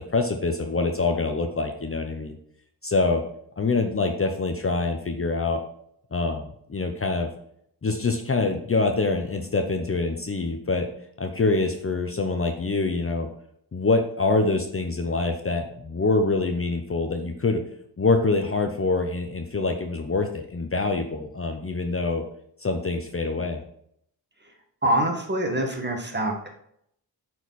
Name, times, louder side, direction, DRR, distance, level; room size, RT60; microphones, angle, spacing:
voice 1, 0.0-2.4 2.8-3.2 3.6-5.6 6.1-7.3 7.8-10.9 11.2-13.3 13.7-17.6 18.0-22.2 22.6-23.6, left 3 dB, 30° left, 5 dB, 0.8 m, -25 dB
voice 2, 24.8-26.5, right 1 dB, 25° right, 2 dB, 1.8 m, -25 dB
7.7 x 4.7 x 4.2 m, 0.70 s
cardioid pair, 65°, 42 cm